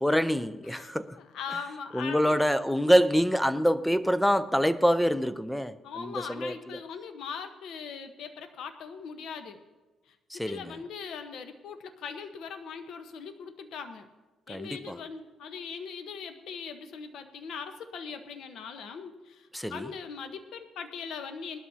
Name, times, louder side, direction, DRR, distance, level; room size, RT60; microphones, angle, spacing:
voice 1, 0.0-1.2 1.9-6.8 10.3-10.8 14.5-15.0 19.5-19.9, equal, 5° left, 0.5 m, -26 dB
voice 2, 0.7-2.4 5.8-9.6 10.1-10.2 10.5-14.1 14.5-21.6, left 6 dB, 75° left, 1.1 m, -40 dB
19.5 x 12.5 x 2.8 m
cardioid pair, 90°, 0 cm